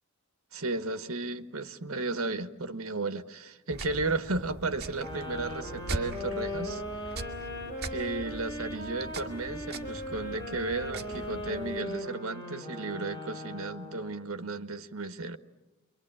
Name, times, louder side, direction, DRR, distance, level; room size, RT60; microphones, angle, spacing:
voice 1, 0.5-6.8 7.9-15.4, right 3 dB, 80° right, 1.3 m, -34 dB
sound 1, 3.7-11.8, right 2 dB, 50° right, 1.9 m, -41 dB
sound 2, 5.0-14.2, left 1 dB, 20° left, 5.6 m, -39 dB
28.0 x 23.5 x 8.9 m
head